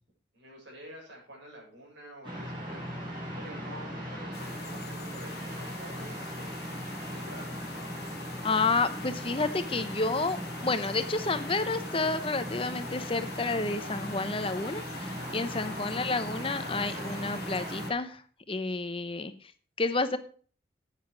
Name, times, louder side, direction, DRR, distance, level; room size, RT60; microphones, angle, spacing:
voice 1, 0.3-2.8 3.4-6.6 7.1-7.5, right 1 dB, 85° right, -2 dB, 7.1 m, -48 dB
sound 1, 2.2-17.9, equal, 25° right, 5.6 m, -38 dB
sound 2, 4.3-17.9, left 6 dB, 60° left, 1.2 m, -46 dB
voice 2, 8.4-18.2 18.5-19.5 19.8-20.2, left 3 dB, 30° left, 11 dB, 0.9 m, -30 dB
10.0 x 9.5 x 4.7 m, 0.42 s
head